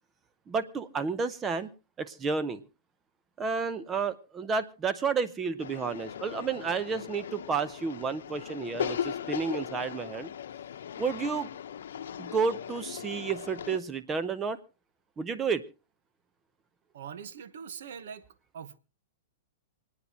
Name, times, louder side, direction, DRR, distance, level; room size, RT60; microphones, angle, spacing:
voice 1, 0.5-1.7 2.0-2.6 3.4-10.3 11.0-11.5 12.2-14.6 15.2-15.6, right 5 dB, 20° right, 0.7 m, -31 dB
sound 1, 5.6-13.8, left 9 dB, 75° left, 0.8 m, -38 dB
voice 2, 16.9-18.3 18.5-18.8, right 7 dB, 70° right, 1.0 m, -42 dB
27.5 x 9.5 x 2.8 m
hypercardioid pair, 135°, 0 cm